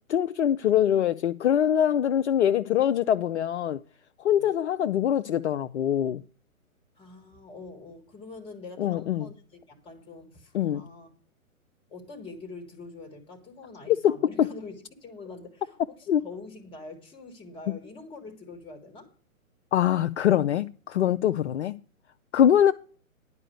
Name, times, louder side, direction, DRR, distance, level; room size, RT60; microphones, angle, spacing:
voice 1, 0.1-3.8 4.2-6.2 8.8-9.3 10.5-10.8 13.9-14.5 16.1-16.2 19.7-21.8 22.3-22.7, left 10 dB, 55° left, 0.5 m, -23 dB
voice 2, 7.0-11.1 11.9-19.1, left 3 dB, 10° left, 1.8 m, -45 dB
11.0 x 4.8 x 7.8 m
figure-of-eight pair, 130°, 42 cm